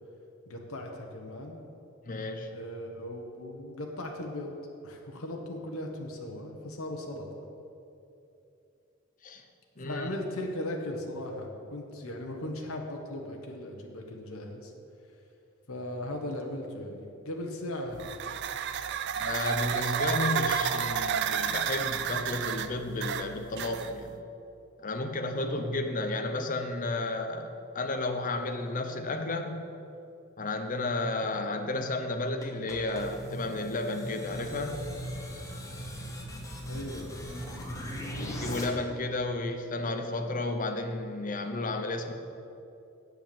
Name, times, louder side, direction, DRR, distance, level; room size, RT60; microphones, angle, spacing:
voice 1, 0.5-1.6 2.5-4.5 4.8-7.4 9.8-14.7 15.7-18.2 25.3-25.7 36.6-37.2, left 1 dB, 80° left, 1 dB, 1.2 m, -38 dB
voice 2, 2.1-2.5 9.2-9.4 9.8-10.2 19.1-24.2 24.8-29.7 30.4-34.8 38.2-42.1, left 2 dB, 40° left, 6 dB, 0.8 m, -32 dB
sound 1, 18.0-24.1, right 8 dB, 55° right, 0.4 m, -31 dB
sound 2, 32.4-38.6, equal, 15° left, 1.3 m, -39 dB
8.0 x 7.7 x 7.0 m, 2.8 s
head